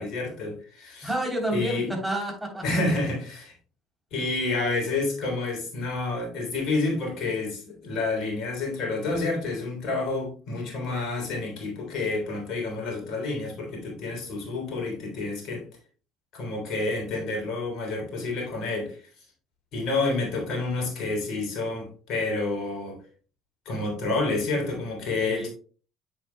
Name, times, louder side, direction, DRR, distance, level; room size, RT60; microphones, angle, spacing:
voice 1, 0.0-1.1 1.5-1.9 2.6-3.5 4.1-15.7 16.3-19.0 19.7-23.0 23.7-25.5, left 3 dB, 60° left, 0 dB, 3.5 m, -29 dB
voice 2, 1.0-2.6 25.2-25.5, right 1 dB, 10° right, 0 dB, 3.4 m, -29 dB
8.1 x 7.0 x 2.2 m, 0.41 s
figure-of-eight pair, 55°, 0 cm